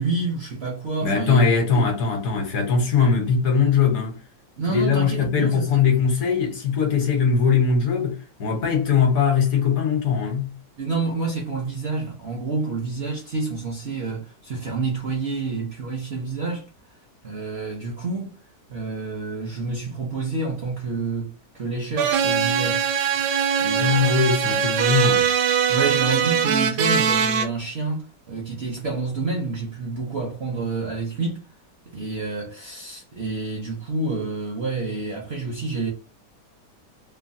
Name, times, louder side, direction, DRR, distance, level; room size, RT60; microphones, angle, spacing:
voice 1, 0.0-1.4 1.7-1.9 4.6-5.8 10.8-16.7 17.2-18.4 18.7-22.9 23.6-24.1 25.7-31.5 31.9-35.9, right 3 dB, 60° right, 0.7 m, -28 dB
voice 2, 1.0-4.2 4.7-10.5 23.7-25.3, left 5 dB, 60° left, 1.2 m, -21 dB
sound 1, 22.0-27.5, right 7 dB, 85° right, 1.2 m, -21 dB
3.1 x 2.2 x 2.6 m
omnidirectional pair, 1.9 m